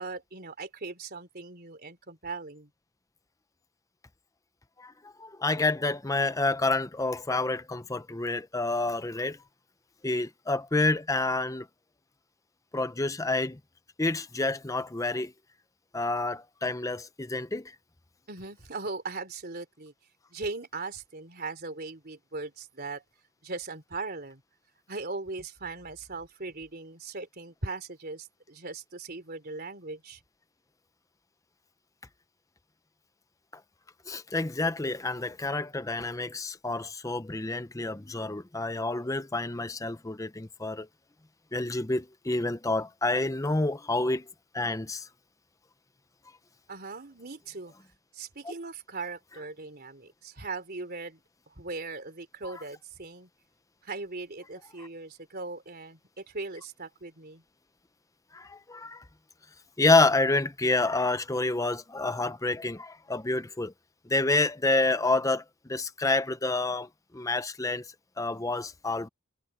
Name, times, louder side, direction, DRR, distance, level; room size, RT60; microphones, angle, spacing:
voice 1, 0.0-2.7 18.3-19.9 20.3-23.0 23.4-24.4 24.9-30.2 46.7-47.7 48.1-53.3 53.8-57.4, right 3 dB, 45° right, 3.5 m, -39 dB
voice 2, 4.8-9.4 10.0-11.7 12.7-13.6 14.0-15.3 15.9-17.7 34.1-40.9 41.5-44.3 44.5-45.1 58.3-59.0 59.8-63.7 64.1-65.4 65.7-66.9 67.1-67.8 68.2-69.1, left 2 dB, 15° left, 0.7 m, -28 dB
head